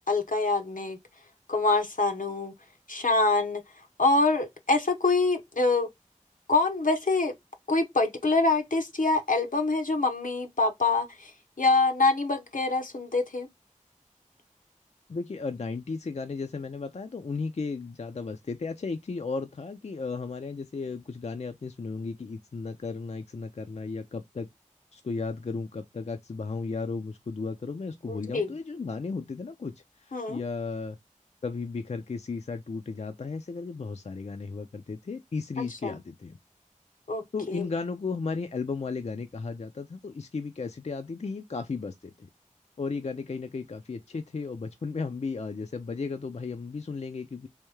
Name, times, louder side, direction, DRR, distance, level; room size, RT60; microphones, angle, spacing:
voice 1, 0.1-1.0 1.5-2.5 2.9-3.6 4.0-5.9 6.5-7.3 7.7-11.3 11.6-13.5 28.1-28.5 30.1-30.4 35.8-36.0 37.1-37.6, left 3 dB, 80° left, 0.7 m, -25 dB
voice 2, 15.1-24.5 24.9-29.7 30.0-31.0 31.4-36.4 37.3-42.3 42.8-47.5, left 4 dB, 55° left, 0.4 m, -34 dB
3.4 x 2.6 x 3.1 m
wide cardioid pair, 40°, 14 cm